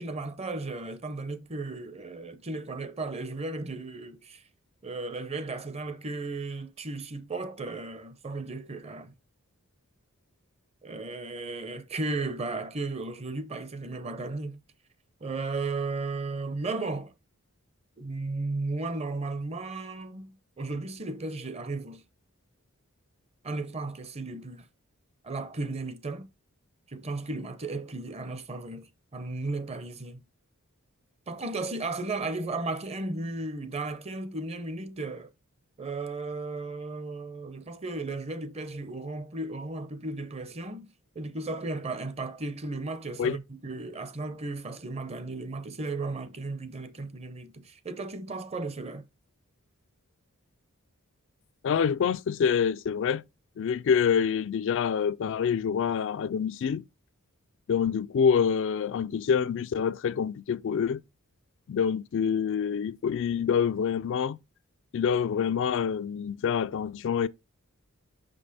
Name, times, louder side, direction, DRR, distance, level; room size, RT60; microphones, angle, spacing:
voice 1, 0.0-4.4 4.8-9.1 10.8-14.6 15.2-17.1 18.0-22.0 23.4-24.7 25.2-26.3 26.9-30.2 31.3-35.3 35.8-40.9 41.1-49.1, right 3 dB, 30° right, 0.7 m, -35 dB
voice 2, 51.6-53.2 53.6-56.8 57.7-61.0 61.7-64.4 64.9-67.3, left 7 dB, 60° left, 0.3 m, -26 dB
6.0 x 5.2 x 4.1 m
head